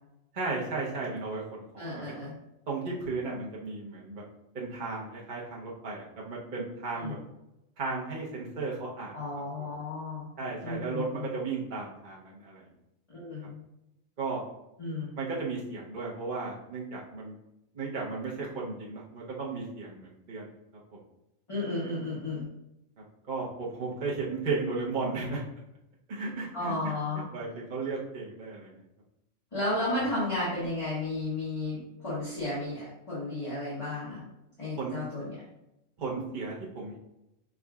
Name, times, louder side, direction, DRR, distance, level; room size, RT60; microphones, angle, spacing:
voice 1, 0.3-1.4 1.7-2.0 2.7-4.2 4.5-7.2 7.8-9.1 10.4-12.6 14.2-14.4 15.2-17.3 17.7-20.5 23.3-25.4 26.1-26.9 27.3-28.7 34.8-34.9 36.0-37.0, right 3 dB, 40° right, -4 dB, 0.8 m, -34 dB
voice 2, 1.8-2.3 6.9-7.2 9.1-10.3 10.6-11.3 13.1-13.6 14.8-15.2 21.5-22.5 26.5-27.2 29.5-34.2 34.6-35.4, left 2 dB, 25° left, -10 dB, 1.4 m, -33 dB
5.4 x 3.6 x 2.3 m, 0.88 s
omnidirectional pair, 1.4 m